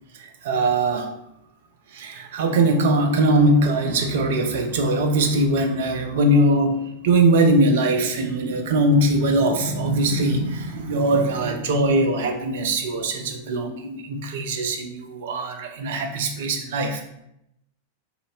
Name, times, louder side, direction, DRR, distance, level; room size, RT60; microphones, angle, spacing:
voice 1, 0.2-1.1 1.9-17.0, right 1 dB, 55° right, 4 dB, 0.4 m, -21 dB
2.6 x 2.4 x 3.0 m, 0.81 s
figure-of-eight pair, 90°, 0 cm